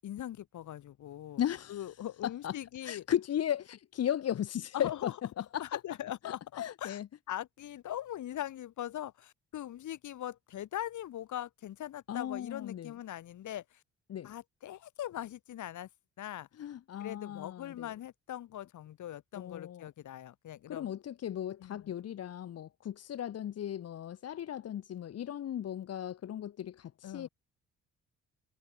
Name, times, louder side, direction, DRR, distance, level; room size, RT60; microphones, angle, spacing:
voice 1, 0.0-1.4 1.7-3.0 4.7-5.1 5.6-7.0 7.3-13.8 14.2-15.9 16.2-16.5 17.0-20.9 21.6-21.9 27.0-27.3, left 12 dB, 75° left, 6.9 m, -41 dB
voice 2, 1.4-1.8 2.4-2.5 2.8-5.1 5.4-5.8 6.2-7.1 12.1-12.9 14.1-14.3 16.6-17.9 19.3-19.9 20.7-27.3, left 10 dB, 55° left, 1.1 m, -36 dB
cardioid pair, 90°, 30 cm